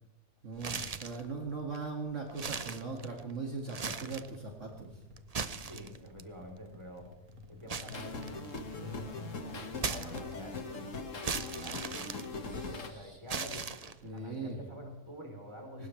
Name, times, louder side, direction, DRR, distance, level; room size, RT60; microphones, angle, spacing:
voice 1, 0.4-5.0 12.4-13.2 14.0-14.6 15.8-15.9, right 4 dB, 55° right, 0 dB, 2.4 m, -40 dB
sound 1, 0.6-1.2 1.7-1.8 2.3-3.3 3.7-4.3 5.2-6.2 7.7-8.7 9.8-10.6 11.2-12.8 13.3-14.2, right 5 dB, 35° right, 0.7 m, -38 dB
sound 2, 4.2-10.5, equal, 75° right, 2.4 m, -53 dB
voice 2, 5.6-7.1 7.5-8.3 8.8-13.7 14.0-15.9, equal, 20° right, 1 dB, 3.7 m, -48 dB
sound 3, 7.9-12.9, left 3 dB, 55° left, 2.0 m, -41 dB
22.5 x 19.5 x 3.3 m, 0.99 s
omnidirectional pair, 1.6 m